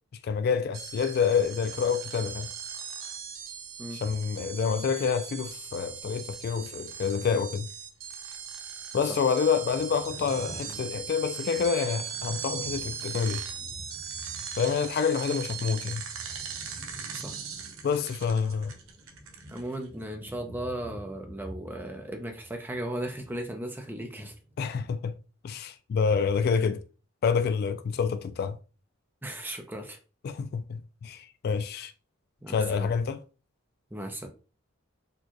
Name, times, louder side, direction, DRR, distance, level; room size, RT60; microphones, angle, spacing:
voice 1, 0.2-2.5 4.0-7.7 8.9-13.4 14.6-16.0 17.8-18.7 24.6-25.1 25.4-26.8 27.2-28.6 30.2-31.9 32.5-33.2, left 6 dB, 50° left, 0.3 m, -27 dB
sound 1, 0.7-19.9, right 7 dB, 85° right, 0.7 m, -39 dB
sound 2, 9.7-15.0 15.2-23.8 24.1-24.8, equal, 25° right, 1.2 m, -48 dB
voice 2, 19.5-24.3 29.2-30.0 32.4-32.9 33.9-34.3, right 1 dB, 10° right, 0.6 m, -36 dB
4.3 x 2.3 x 2.9 m
head